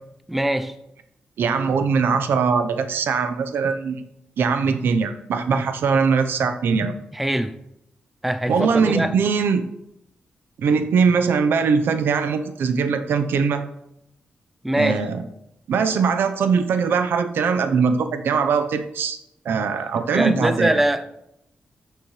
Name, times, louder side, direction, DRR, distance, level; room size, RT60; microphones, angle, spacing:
voice 1, 0.3-0.7 7.1-7.5 8.2-9.1 14.6-15.0 20.1-21.1, right 1 dB, 5° right, 0.4 m, -22 dB
voice 2, 1.4-4.0 4.4-7.0 8.5-9.6 10.6-13.6 14.8-15.2 15.7-19.2 19.4-20.8, right 5 dB, 90° right, 0.8 m, -21 dB
14.0 x 6.8 x 3.2 m
wide cardioid pair, 150°, 4 cm